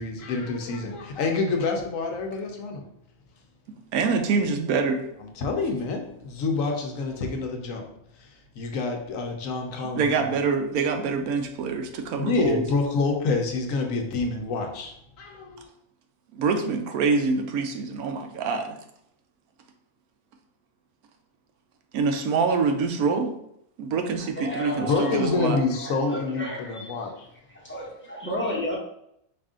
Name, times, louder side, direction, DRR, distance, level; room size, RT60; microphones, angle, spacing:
voice 1, 0.0-2.8 5.2-7.9 8.2-10.4 12.1-15.7 24.8-27.3, left 3 dB, 70° left, 3 dB, 1.1 m, -28 dB
voice 2, 3.9-5.0 9.9-12.6 16.3-18.8 21.9-23.3 23.8-25.6, right 4 dB, 85° right, 5 dB, 1.1 m, -25 dB
voice 3, 24.3-25.4 25.7-26.9 27.5-28.7, equal, 10° left, -5 dB, 1.0 m, -32 dB
4.9 x 2.5 x 3.6 m, 0.74 s
omnidirectional pair, 1.5 m